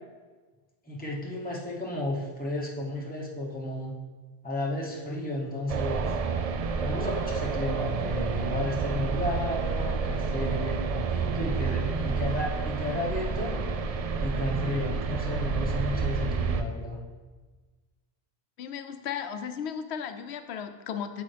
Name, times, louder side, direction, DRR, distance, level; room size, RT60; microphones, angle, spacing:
voice 1, 0.9-4.0 4.4-6.1 6.8-13.6 14.2-17.0, left 1 dB, 10° left, -3 dB, 1.0 m, -33 dB
sound 1, 5.7-16.6, right 4 dB, 55° right, 0.4 m, -29 dB
voice 2, 18.6-21.2, left 8 dB, 85° left, 8 dB, 0.9 m, -35 dB
8.3 x 6.2 x 3.4 m, 1.3 s
omnidirectional pair, 1.1 m